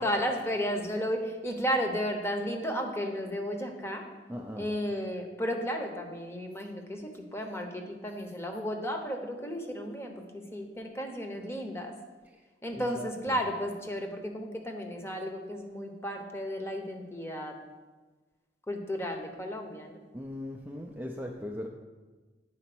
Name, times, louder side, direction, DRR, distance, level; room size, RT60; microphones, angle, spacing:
voice 1, 0.0-4.0 4.6-11.9 12.6-17.5 18.7-20.0, equal, 15° left, 3 dB, 0.9 m, -33 dB
voice 2, 4.3-4.7 13.0-13.1 20.1-21.7, left 1 dB, 10° right, 0 dB, 0.4 m, -38 dB
9.0 x 4.2 x 6.0 m, 1.3 s
head